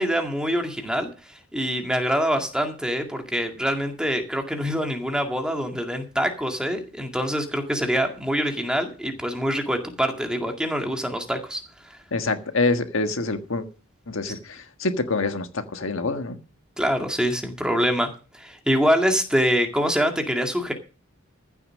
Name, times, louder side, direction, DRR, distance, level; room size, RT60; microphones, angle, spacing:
voice 1, 0.0-12.0 16.8-18.1 18.3-20.7, equal, 5° right, 2.0 m, -25 dB
voice 2, 12.1-13.7 14.1-16.4, left 3 dB, 65° left, 1.5 m, -26 dB
15.0 x 7.0 x 6.4 m
head